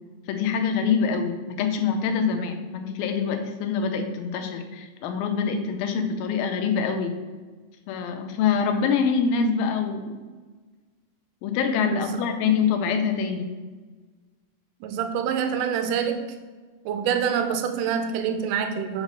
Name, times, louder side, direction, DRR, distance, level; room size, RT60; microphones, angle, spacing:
voice 1, 0.3-7.1 7.9-10.1 11.4-13.5, left 6 dB, 85° left, 6 dB, 2.5 m, -25 dB
voice 2, 14.8-16.3 16.9-19.0, right 7 dB, 80° right, 7 dB, 1.9 m, -26 dB
7.4 x 3.1 x 5.0 m, 1.4 s
omnidirectional pair, 4.1 m